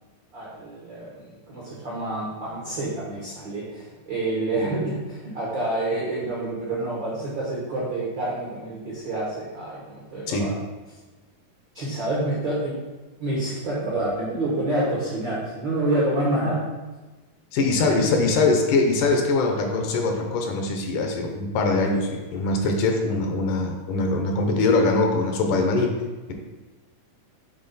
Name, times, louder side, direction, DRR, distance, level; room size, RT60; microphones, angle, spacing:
voice 1, 0.3-10.5 11.7-12.7 13.2-16.6 17.8-18.0, right 2 dB, 75° right, -6 dB, 1.0 m, -28 dB
voice 2, 17.5-25.9, left 3 dB, 75° left, 3 dB, 2.2 m, -22 dB
7.8 x 3.5 x 4.0 m, 1.2 s
omnidirectional pair, 3.9 m